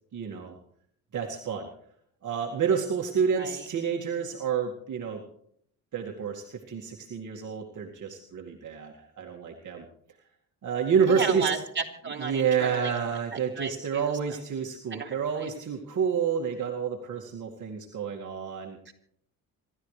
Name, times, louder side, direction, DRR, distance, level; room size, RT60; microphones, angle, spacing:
voice 1, 0.1-0.6 1.1-1.7 2.2-5.2 5.9-9.9 10.6-11.5 12.2-18.8, right 6 dB, 55° right, 0 dB, 2.1 m, -29 dB
voice 2, 3.3-3.7 11.1-13.0 13.3-14.1 14.9-15.5 18.9-19.0, right 5 dB, 30° right, 0 dB, 3.6 m, -34 dB
26.5 x 13.0 x 3.3 m, 0.67 s
cardioid pair, 90°, 36 cm